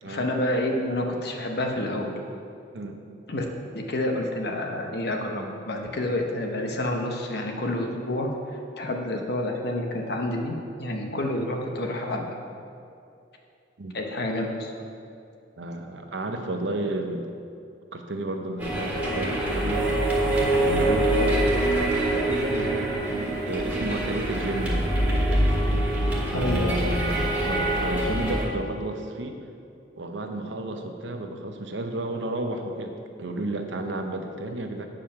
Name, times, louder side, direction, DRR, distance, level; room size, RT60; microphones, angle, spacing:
voice 1, 0.1-2.1 3.3-3.4 3.7-8.3 8.8-12.2 13.9-14.8 20.7-20.9 24.0-24.2 26.3-26.8, left 1 dB, 65° left, 2 dB, 1.0 m, -29 dB
voice 2, 15.6-17.3 17.9-19.9 20.4-29.4 29.9-34.9, right 2 dB, 85° right, 5 dB, 0.8 m, -32 dB
sound 1, 18.6-28.4, right 1 dB, 10° right, 1.7 m, -24 dB
9.0 x 5.0 x 5.8 m, 2.6 s
head